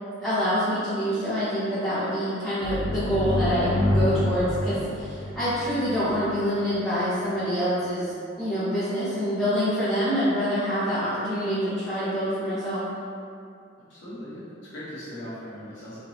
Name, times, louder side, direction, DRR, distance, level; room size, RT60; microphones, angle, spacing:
voice 1, 0.2-12.9, equal, ahead, -18 dB, 1.1 m, -26 dB
sound 1, 2.6-6.2, left 1 dB, 35° left, 0.6 m, -27 dB
voice 2, 13.9-16.0, equal, 70° left, -10 dB, 1.1 m, -39 dB
4.3 x 2.8 x 2.8 m, 2.4 s
head